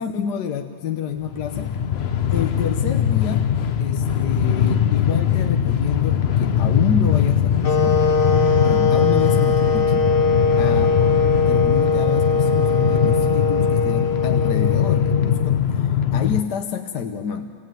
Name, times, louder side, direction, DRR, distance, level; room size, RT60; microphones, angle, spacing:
voice 1, 0.0-1.7 2.3-8.0 8.6-10.1 10.6-11.0 11.5-17.5, left 7 dB, 65° left, 6 dB, 1.5 m, -28 dB
Train, 1.2-16.4, left 8 dB, 80° left, 0.5 m, -21 dB
sound 1, 7.6-15.6, left 4 dB, 40° left, 0.8 m, -21 dB
26.0 x 19.0 x 9.1 m, 2.1 s
omnidirectional pair, 2.1 m